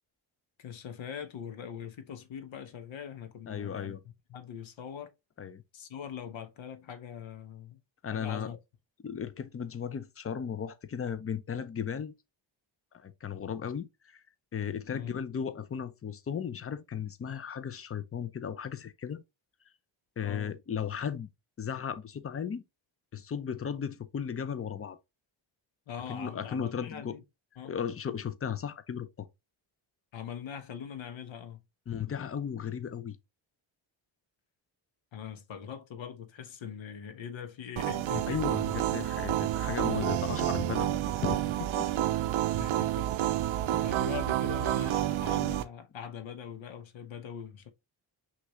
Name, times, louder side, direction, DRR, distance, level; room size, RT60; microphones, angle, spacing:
voice 1, 0.6-4.0 4.3-5.1 5.7-7.8 8.1-8.6 14.9-15.2 20.2-20.5 25.9-27.2 27.6-27.8 30.1-31.6 35.1-38.4 42.6-43.4 43.8-47.7, left 8 dB, 70° left, 1.0 m, -42 dB
voice 2, 3.5-4.0 5.4-5.6 8.0-8.6 9.0-12.1 12.9-14.2 14.5-19.2 20.2-21.3 21.6-22.6 23.1-25.0 26.1-27.2 27.6-29.3 31.9-33.2 38.3-41.9 43.7-44.0, left 7 dB, 30° left, 0.6 m, -36 dB
sound 1, 37.8-45.6, right 13 dB, 75° right, 0.7 m, -29 dB
5.9 x 2.5 x 3.0 m
cardioid pair, 85°, 48 cm